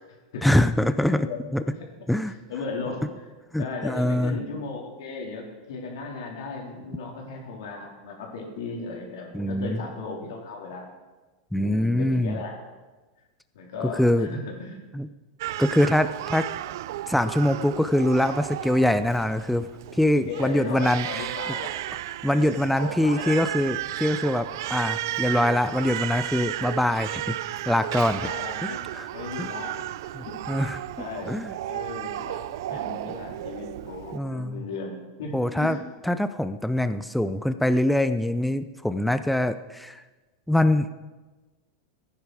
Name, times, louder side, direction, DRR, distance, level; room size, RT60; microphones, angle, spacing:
voice 1, 0.4-1.3 1.5-1.6 2.1-2.3 3.5-4.4 9.3-9.8 11.5-12.4 13.8-14.3 14.9-15.1 15.6-16.5 17.1-21.3 22.2-28.3 28.6-29.1 29.4-29.5 30.2-30.8 31.3-31.5 34.1-34.6 35.3-35.8 36.0-40.0 40.5-40.9, left 1 dB, ahead, 11 dB, 0.4 m, -24 dB
voice 2, 1.1-1.7 2.5-3.3 3.6-10.8 11.6-12.5 13.5-14.8 20.3-21.7 22.2-23.4 28.2-28.8 29.1-30.7 31.0-31.3 31.6-35.8, left 4 dB, 80° left, 0 dB, 3.6 m, -36 dB
Crying sobbing, 15.4-34.2, right 14 dB, 70° right, 0.4 m, -34 dB
15.5 x 9.9 x 4.9 m, 1.2 s
supercardioid pair, 150°, 2 cm